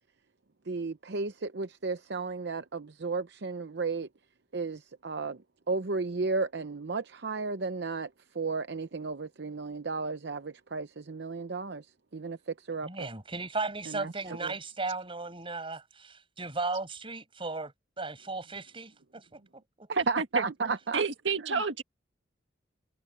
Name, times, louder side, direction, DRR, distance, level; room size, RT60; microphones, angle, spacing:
voice 1, 0.7-4.1 4.5-5.4 5.7-8.1 8.3-11.9 12.1-13.1 13.9-14.5 20.1-21.0 21.5-21.8, right 4 dB, 65° right, 0.8 m, -34 dB
voice 2, 12.8-19.4 19.8-19.9, right 3 dB, 30° right, 6.4 m, -36 dB
voice 3, 20.0-20.4 20.9-21.8, right 4 dB, 85° right, 1.8 m, -29 dB
head